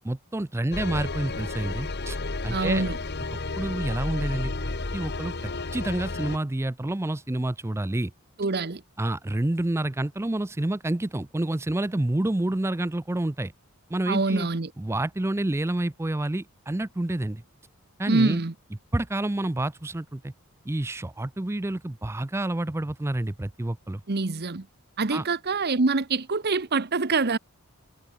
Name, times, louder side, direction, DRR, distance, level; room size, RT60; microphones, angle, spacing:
voice 1, 0.0-2.2 2.4-2.9 3.6-5.3 5.7-8.1 9.0-13.5 13.9-14.5 14.8-17.4 18.0-18.4 18.9-20.3 20.7-24.0 25.1-25.2, right 1 dB, 10° right, 0.4 m, -28 dB
sound 1, 0.7-6.4, left 3 dB, 50° left, 1.4 m, -32 dB
voice 2, 2.5-3.0 8.4-8.8 14.1-14.7 18.1-18.5 24.1-24.7 25.0-27.4, right 3 dB, 45° right, 1.0 m, -25 dB
head